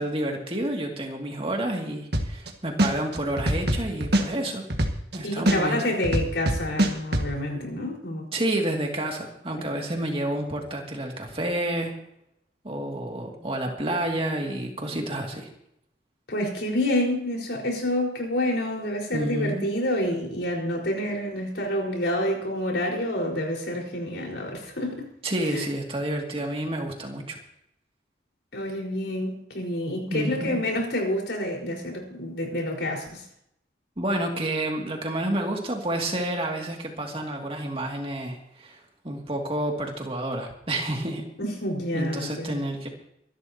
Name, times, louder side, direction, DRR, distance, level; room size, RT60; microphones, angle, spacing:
voice 1, 0.0-4.6 5.1-5.9 8.3-11.9 12.6-15.5 19.1-19.7 25.2-27.4 30.1-30.6 34.0-38.8 39.0-41.2 41.9-42.9, right 1 dB, 30° right, 1 dB, 2.5 m, -29 dB
sound 1, 2.1-2.5 2.8-5.2 5.5-7.3, right 1 dB, 60° right, 1.8 m, -22 dB
voice 2, 5.2-8.3 16.3-25.1 25.5-25.7 28.5-33.2 41.4-42.6, left 1 dB, 80° left, 0 dB, 4.8 m, -28 dB
25.0 x 12.5 x 2.9 m, 0.75 s
head